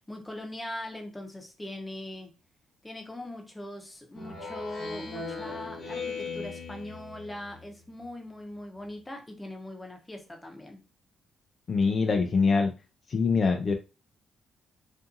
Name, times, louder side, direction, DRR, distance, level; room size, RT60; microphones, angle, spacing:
voice 1, 0.0-2.3 2.8-10.8, left 1 dB, 10° left, 2 dB, 0.7 m, -41 dB
Speech synthesizer, 4.2-7.7, left 4 dB, 60° left, 1.0 m, -38 dB
voice 2, 11.7-12.7 13.1-13.7, left 4 dB, 45° left, 4 dB, 0.3 m, -24 dB
2.5 x 2.5 x 2.6 m, 0.31 s
cardioid pair, 90°, 0 cm